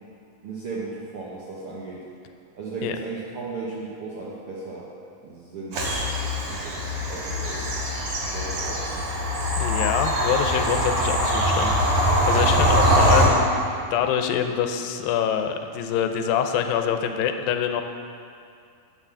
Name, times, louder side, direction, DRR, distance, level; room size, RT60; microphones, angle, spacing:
voice 1, 0.4-2.1 2.5-4.9 5.2-7.7 8.3-9.0, right 3 dB, 85° right, -6 dB, 1.2 m, -36 dB
Bird vocalization bird call bird song / Train, 5.7-13.3, equal, 65° right, 3.3 m, -22 dB
voice 2, 9.6-11.7 12.2-17.8, left 8 dB, 80° left, 7 dB, 2.3 m, -25 dB
9.7 x 6.1 x 6.9 m, 2.4 s
omnidirectional pair, 4.2 m